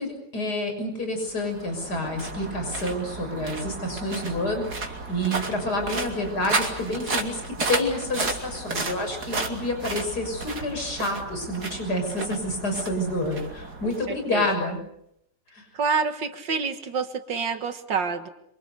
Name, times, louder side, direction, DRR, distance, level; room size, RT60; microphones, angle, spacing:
voice 1, 0.0-7.4 7.7-14.8 15.5-15.7, left 1 dB, 60° left, 5 dB, 7.1 m, -28 dB
sound 1, 1.2-14.6, right 3 dB, 60° right, 3.6 m, -33 dB
voice 2, 13.8-14.5 15.7-18.3, right 5 dB, 80° right, 8 dB, 2.4 m, -28 dB
27.5 x 26.5 x 6.8 m, 0.77 s
omnidirectional pair, 1.9 m